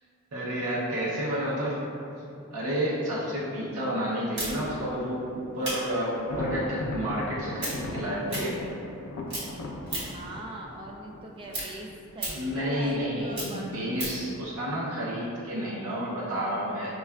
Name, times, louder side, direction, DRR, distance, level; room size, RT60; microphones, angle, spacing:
voice 1, 0.3-1.8 2.5-8.6 12.3-16.9, equal, 70° right, -8 dB, 0.7 m, -30 dB
sound 1, 4.4-9.0 9.3-10.3 10.7-14.3, right 1 dB, 55° right, 1.2 m, -36 dB
Thunder, 6.1-12.0, left 1 dB, 85° left, 0.4 m, -37 dB
voice 2, 10.1-13.7 14.5-14.8, right 1 dB, 25° right, -1 dB, 0.3 m, -41 dB
5.2 x 2.3 x 2.3 m, 2.7 s
head